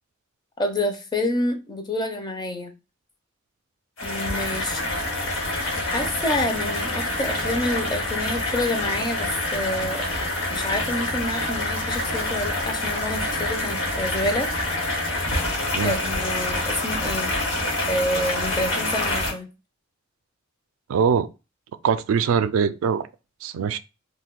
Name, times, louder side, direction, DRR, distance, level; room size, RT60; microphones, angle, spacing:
voice 1, 0.6-2.7 4.0-4.9 5.9-10.0 10.5-14.5 15.8-17.3 17.9-19.5, left 1 dB, 20° left, 0.5 m, -28 dB
sound 1, 4.0-19.3, left 2 dB, 65° left, 1.2 m, -26 dB
voice 2, 20.9-21.3 21.8-23.1 23.4-23.8, right 6 dB, 75° right, 0.3 m, -22 dB
2.5 x 2.2 x 3.6 m
head